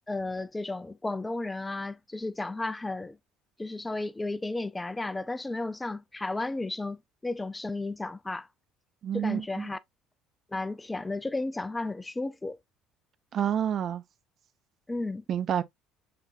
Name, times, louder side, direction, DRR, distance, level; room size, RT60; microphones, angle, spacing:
voice 1, 0.1-3.2 3.6-8.5 9.1-9.8 10.5-12.6 14.9-15.2, left 2 dB, 15° left, 0.4 m, -33 dB
voice 2, 9.0-9.7 13.3-14.0 15.3-15.6, right 9 dB, 50° right, 0.4 m, -28 dB
5.6 x 3.4 x 2.5 m
hypercardioid pair, 60°, 0 cm